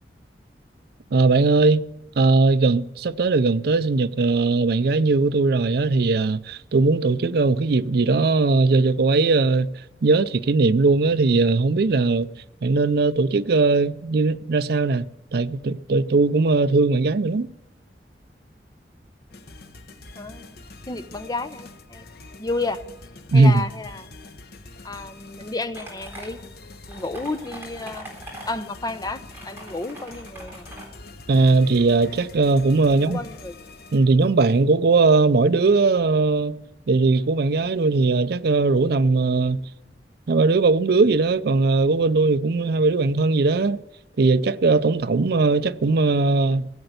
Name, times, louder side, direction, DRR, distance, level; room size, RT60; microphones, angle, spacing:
voice 1, 1.1-1.8 2.2-9.7 10.0-12.3 12.6-15.0 15.3-17.5 23.3-23.5 31.3-33.2 33.9-36.6 36.9-39.6 40.3-43.8 44.2-46.7, right 3 dB, 60° right, 0.5 m, -19 dB
sound 1, 19.3-34.4, left 3 dB, 60° left, 1.0 m, -44 dB
voice 2, 20.1-20.6 20.9-22.1 22.4-22.8 23.3-24.1 24.8-26.4 26.9-28.1 28.5-30.7 32.9-33.6, left 3 dB, 25° left, 0.7 m, -31 dB
sound 2, 25.7-26.3 26.9-28.5 29.3-30.9, right 1 dB, 15° right, 3.8 m, -41 dB
15.5 x 7.8 x 8.0 m
head